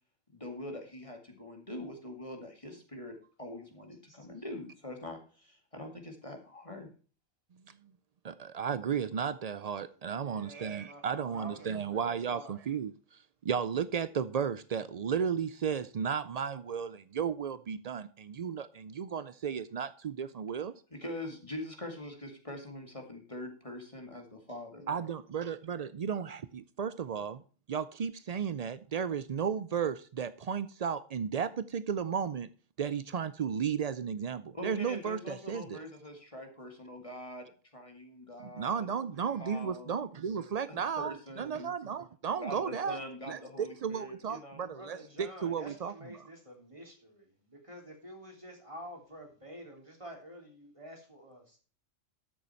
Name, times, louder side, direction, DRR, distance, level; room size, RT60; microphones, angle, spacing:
voice 1, 0.3-6.9 20.9-25.0 34.5-38.9 39.4-40.1 40.7-41.7 42.4-44.7 45.0-45.1, left 1 dB, 25° left, 2.3 m, -44 dB
voice 2, 8.2-20.7 24.9-27.4 27.7-32.5 32.8-35.8 38.5-43.0 43.3-45.9, right 7 dB, 70° right, 0.3 m, -34 dB
voice 3, 10.0-12.6 44.7-51.6, equal, 25° right, 3.4 m, -49 dB
13.5 x 6.9 x 4.4 m
omnidirectional pair, 1.3 m